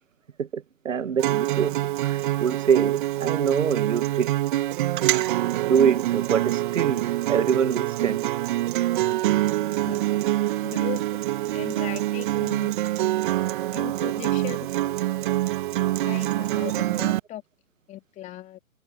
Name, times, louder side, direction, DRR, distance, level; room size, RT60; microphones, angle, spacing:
voice 1, 0.4-4.3 5.5-8.3, right 7 dB, 60° right, 1.6 m, -25 dB
Acoustic guitar, 1.2-17.2, right 15 dB, 35° right, 2.0 m, -25 dB
voice 2, 10.6-11.1 11.5-12.8 13.7-14.7 16.0-17.4 17.9-18.6, left 14 dB, 15° left, 2.6 m, -38 dB
figure-of-eight pair, 130°, 42 cm